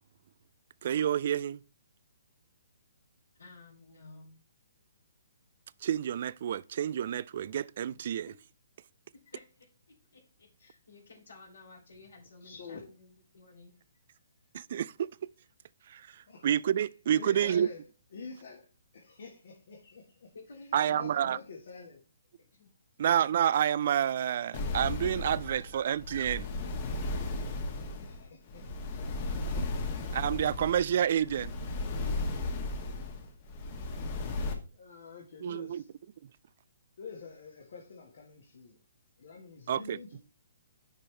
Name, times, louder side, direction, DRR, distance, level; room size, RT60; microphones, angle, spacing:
voice 1, 0.8-1.6 5.8-8.3 14.5-15.1 15.9-17.7 20.7-21.4 23.0-26.5 30.1-31.5 35.4-35.8 39.7-40.0, right 9 dB, 50° right, 0.3 m, -29 dB
voice 2, 3.4-4.3 9.2-9.4 9.9-13.7 20.3-21.4 22.5-22.7, left 3 dB, 75° left, 3.1 m, -53 dB
voice 3, 12.4-12.8 16.3-16.5 16.8-17.8 18.1-18.7 18.9-22.0 25.6-25.7 27.9-29.7 30.4-30.6 31.9-32.0 34.7-35.9 37.0-38.8 39.2-40.3, left 4 dB, 55° left, 1.6 m, -48 dB
sound 1, 24.5-34.5, left 2 dB, 40° left, 1.5 m, -35 dB
10.0 x 4.6 x 3.3 m
figure-of-eight pair, 130°, 0 cm